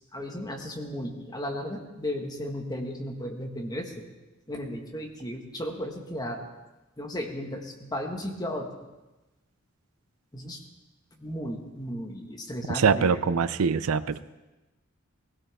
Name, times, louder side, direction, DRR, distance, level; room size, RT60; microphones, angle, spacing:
voice 1, 0.1-4.0 4.5-6.4 7.0-8.7 10.3-10.6 11.1-13.4, equal, 20° left, 2 dB, 1.6 m, -35 dB
voice 2, 12.7-14.2, right 5 dB, 85° right, 14 dB, 0.5 m, -23 dB
19.5 x 16.5 x 3.6 m, 1.1 s
head